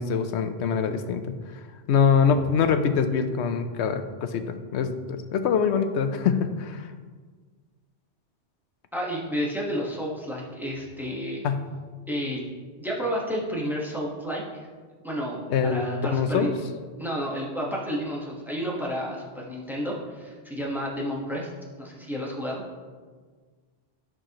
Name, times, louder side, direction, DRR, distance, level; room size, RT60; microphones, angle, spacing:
voice 1, 0.0-1.3 1.9-6.8 11.4-11.7 15.5-16.5, left 6 dB, 85° left, 9 dB, 0.9 m, -24 dB
voice 2, 8.9-11.4 12.1-12.4 12.8-14.6 15.0-16.5 17.0-21.5 21.8-22.6, equal, ahead, -4 dB, 1.2 m, -31 dB
10.0 x 6.1 x 2.9 m, 1.5 s
omnidirectional pair, 1.1 m